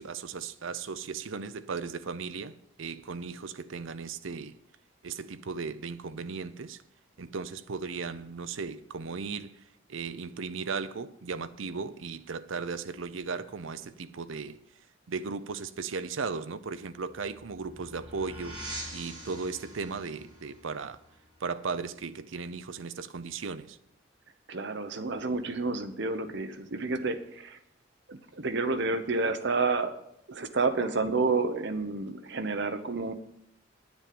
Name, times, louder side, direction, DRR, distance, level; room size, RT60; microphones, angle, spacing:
voice 1, 0.0-4.6 5.0-6.8 7.2-9.5 9.9-14.6 15.1-21.0 21.4-23.8, right 5 dB, 75° right, 0.6 m, -36 dB
sound 1, 16.8-22.1, right 1 dB, 20° right, 3.9 m, -45 dB
voice 2, 24.5-27.6 28.1-29.9 30.3-33.1, right 3 dB, 60° right, 1.0 m, -30 dB
10.0 x 7.2 x 7.7 m
head